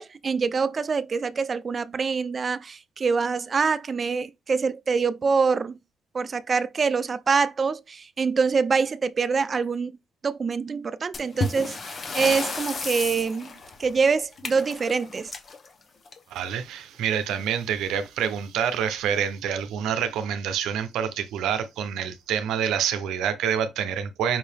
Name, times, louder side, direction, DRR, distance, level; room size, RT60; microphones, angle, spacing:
voice 1, 0.0-5.8 6.1-9.9 10.2-13.5 13.8-15.3, right 5 dB, 40° right, 0.4 m, -25 dB
sound 1, 11.1-16.5 17.8-17.9 18.2-18.3 19.0-19.1 19.8-20.0, left 3 dB, 45° left, 1.0 m, -33 dB
voice 2, 16.3-24.4, right 8 dB, 85° right, 0.7 m, -27 dB
5.5 x 2.7 x 3.4 m
cardioid pair, 90°, 0 cm